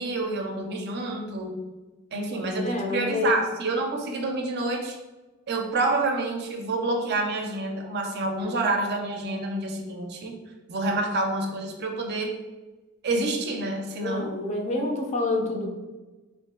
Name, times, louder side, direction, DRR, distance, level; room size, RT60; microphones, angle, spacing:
voice 1, 0.0-1.6 2.1-5.0 5.5-10.3 10.7-12.3 13.0-14.4, right 2 dB, 50° right, 3 dB, 0.5 m, -28 dB
voice 2, 2.5-3.4 14.0-15.7, left 2 dB, 35° left, 1 dB, 0.5 m, -27 dB
3.0 x 2.5 x 3.6 m, 1.2 s
head